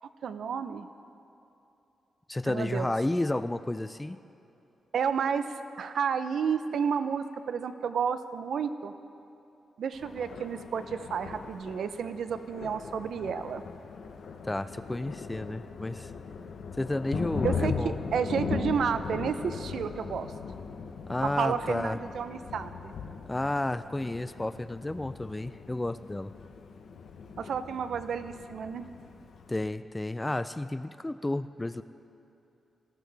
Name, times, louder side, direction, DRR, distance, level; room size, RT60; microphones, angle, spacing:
voice 1, 0.2-0.9 2.5-2.9 4.9-5.5 5.8-8.9 9.8-13.6 17.4-20.3 21.2-22.9 27.4-28.9, right 7 dB, 70° right, 11 dB, 0.6 m, -31 dB
voice 2, 2.3-4.2 14.5-16.1 16.8-18.0 21.1-22.0 23.3-26.3 29.5-31.8, left 1 dB, 10° left, 12 dB, 0.3 m, -31 dB
Thunder, 9.9-29.7, left 5 dB, 70° left, 0.8 m, -39 dB
20.0 x 14.0 x 3.4 m, 2.8 s
wide cardioid pair, 150°, 0 cm